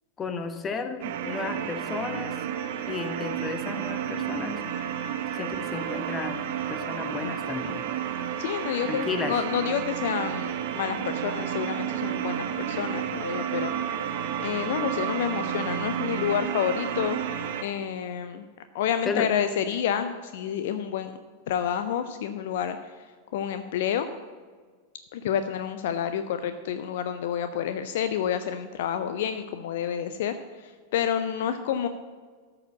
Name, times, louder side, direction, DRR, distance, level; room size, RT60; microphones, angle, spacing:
voice 1, 0.2-2.4 2.9-4.6 5.4-6.4 6.7-7.8 8.9-9.3 19.0-19.3, left 4 dB, 20° left, 8 dB, 1.0 m, -33 dB
sound 1, 1.0-17.6, right 9 dB, 50° right, 0.8 m, -31 dB
voice 2, 8.4-13.7 14.4-17.2 17.6-18.5 18.7-21.1 21.5-23.1 23.3-24.1 25.1-31.9, left 9 dB, 55° left, 9 dB, 0.5 m, -29 dB
13.0 x 4.9 x 7.0 m, 1.5 s
figure-of-eight pair, 90°, 0 cm